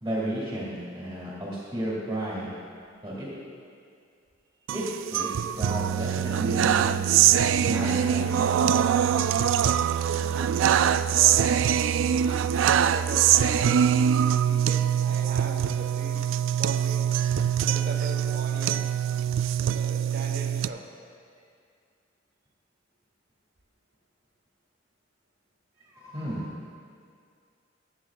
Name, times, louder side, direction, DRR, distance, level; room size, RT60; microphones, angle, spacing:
voice 1, 0.0-2.5 3.0-3.3 4.7-4.8 5.1-6.9 7.6-8.5 25.9-26.4, right 1 dB, 20° right, -7 dB, 2.2 m, -32 dB
sound 1, 4.7-20.7, right 9 dB, 90° right, 0.3 m, -23 dB
voice 2, 9.8-12.4 12.8-13.8 14.4-17.1 17.6-19.0 19.7-20.9, right 1 dB, 55° right, 2 dB, 1.2 m, -39 dB
21.0 x 8.2 x 2.4 m, 2.3 s
head